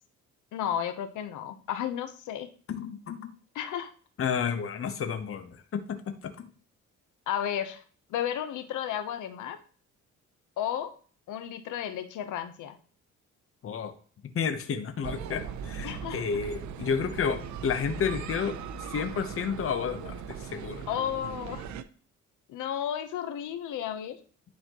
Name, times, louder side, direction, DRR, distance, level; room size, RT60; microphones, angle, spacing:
voice 1, 0.5-2.5 3.5-3.9 7.3-7.8 8.1-9.6 10.6-10.9 11.3-12.8 15.8-16.2 20.9-21.7 22.5-24.2, left 10 dB, 80° left, 9 dB, 0.9 m, -33 dB
voice 2, 2.7-3.3 4.2-6.5 13.6-13.9 14.3-18.6 18.9-20.9, left 6 dB, 45° left, 7 dB, 1.0 m, -31 dB
sound 1, 15.0-21.8, right 7 dB, 70° right, 0.6 m, -39 dB
10.5 x 4.3 x 3.0 m, 0.43 s
cardioid pair, 90°, 30 cm